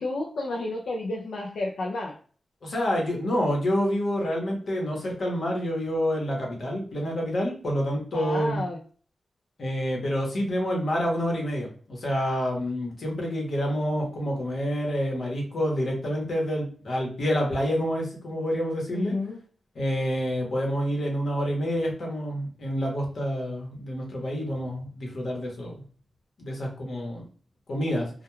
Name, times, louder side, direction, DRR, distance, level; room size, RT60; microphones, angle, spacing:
voice 1, 0.0-2.2 8.1-8.8 18.9-19.4, left 2 dB, 80° left, -2 dB, 0.4 m, -31 dB
voice 2, 2.6-8.6 9.6-19.2 19.7-25.7 26.4-27.2 27.7-28.1, equal, 60° left, -1 dB, 0.9 m, -28 dB
2.2 x 2.2 x 3.0 m, 0.43 s
wide cardioid pair, 125°, 0 cm